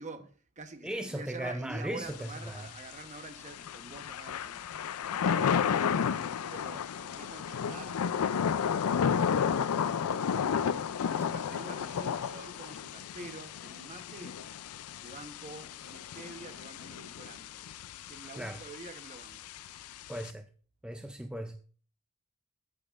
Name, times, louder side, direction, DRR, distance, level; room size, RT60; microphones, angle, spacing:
voice 1, 0.0-4.6 5.1-5.6 6.1-8.0 8.9-10.7 11.0-14.4 15.0-17.7 18.0-19.5, right 3 dB, 35° right, 0.9 m, -47 dB
voice 2, 0.8-2.6 18.4-18.6 20.1-20.5 20.8-21.6, right 1 dB, 5° right, 0.4 m, -37 dB
Thunder / Rain, 2.1-20.3, left 7 dB, 70° left, 0.4 m, -33 dB
13.5 x 8.6 x 2.5 m
head